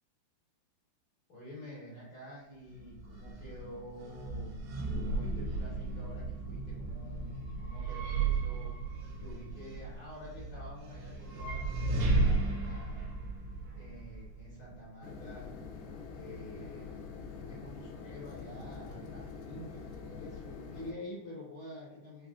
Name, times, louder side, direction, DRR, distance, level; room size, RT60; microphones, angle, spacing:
voice 1, 1.3-8.8 9.2-13.2 13.7-15.5 16.1-22.3, left 1 dB, 65° left, -9 dB, 1.8 m, -48 dB
sound 1, 2.7-14.8, right 3 dB, 80° right, 2.1 m, -35 dB
sound 2, 15.0-20.9, left 5 dB, 85° left, 2.2 m, -45 dB
6.4 x 2.3 x 2.4 m, 0.89 s
omnidirectional pair, 4.9 m